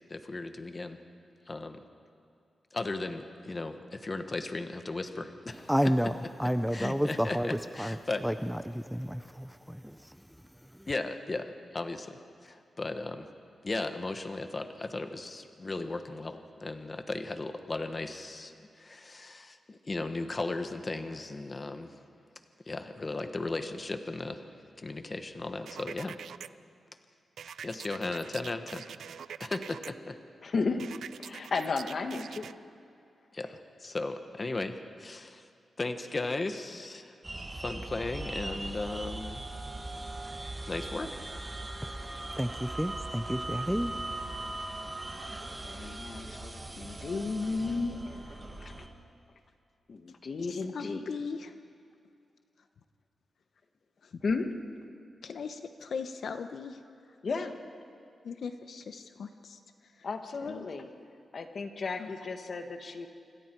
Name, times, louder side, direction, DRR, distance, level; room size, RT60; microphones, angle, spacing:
voice 1, 0.1-1.0 1.5-1.8 2.7-5.7 6.7-8.3 10.9-12.2 12.4-13.3 13.6-21.9 22.7-24.4 24.8-26.2 27.6-28.8 29.4-30.2 31.3-31.4 33.3-35.4 35.8-37.1 37.5-39.4 40.7-41.1, left 2 dB, 30° left, 7 dB, 1.3 m, -36 dB
voice 2, 5.7-7.5 7.8-8.0 8.2-10.1 10.8-10.9 42.4-43.9, equal, ahead, 10 dB, 0.5 m, -30 dB
sound 1, 25.7-26.5 27.4-29.9 30.8-32.5, right 8 dB, 85° right, 0.4 m, -44 dB
voice 3, 30.4-30.8 31.2-32.5 45.6-48.7 49.9-51.0 54.2-54.5 57.2-57.5 60.0-60.9 61.3-63.1, left 4 dB, 50° left, 6 dB, 1.6 m, -34 dB
sound 2, 37.2-48.9, right 2 dB, 20° right, 1.7 m, -39 dB
voice 4, 50.4-51.5 54.0-54.2 55.2-56.8 58.2-59.6 59.9-60.1 60.4-60.7 62.0-62.1, left 5 dB, 65° left, 8 dB, 1.0 m, -39 dB
27.0 x 25.0 x 4.7 m, 2.4 s
wide cardioid pair, 125°, 0 cm